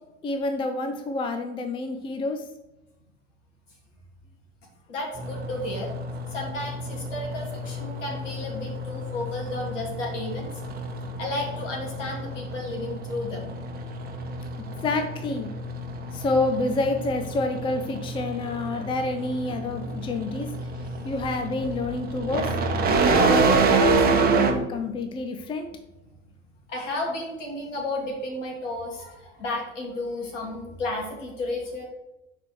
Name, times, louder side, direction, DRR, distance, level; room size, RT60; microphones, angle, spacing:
voice 1, 0.2-2.4 14.6-15.5 16.1-20.5 21.0-22.5 23.1-25.7, left 2 dB, 15° left, 6 dB, 0.6 m, -28 dB
voice 2, 4.9-5.9 6.3-10.5 11.2-13.5 26.7-31.8, left 2 dB, 65° left, 0 dB, 2.7 m, -33 dB
sound 1, 5.1-24.5, right 3 dB, 25° right, 1.1 m, -28 dB
5.9 x 4.7 x 6.1 m, 0.97 s
figure-of-eight pair, 85°, 39 cm